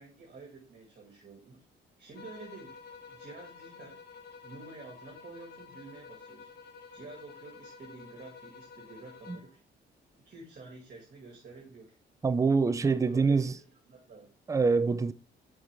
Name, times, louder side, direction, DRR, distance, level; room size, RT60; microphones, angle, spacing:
voice 1, 0.0-1.6 2.0-2.8 3.1-4.0 4.4-6.5 6.9-9.6 10.2-12.0 13.0-14.3, right 3 dB, 45° right, 2.1 m, -49 dB
sound 1, 2.1-9.6, left 5 dB, 50° left, 1.5 m, -50 dB
voice 2, 12.2-13.5 14.5-15.1, right 4 dB, 15° right, 0.4 m, -25 dB
6.4 x 4.7 x 3.5 m
cardioid pair, 90°, 20 cm